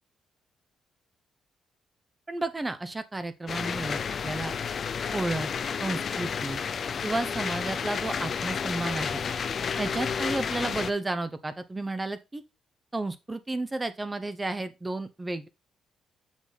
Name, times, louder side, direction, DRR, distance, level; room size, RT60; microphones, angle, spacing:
voice 1, 2.3-4.5 5.1-5.5 5.8-6.6 7.0-9.2 9.8-12.4 12.9-15.5, right 2 dB, 20° right, 0.7 m, -32 dB
sound 1, 3.5-10.9, left 6 dB, 50° left, 0.5 m, -31 dB
7.2 x 4.0 x 4.1 m
cardioid pair, 90°, 0 cm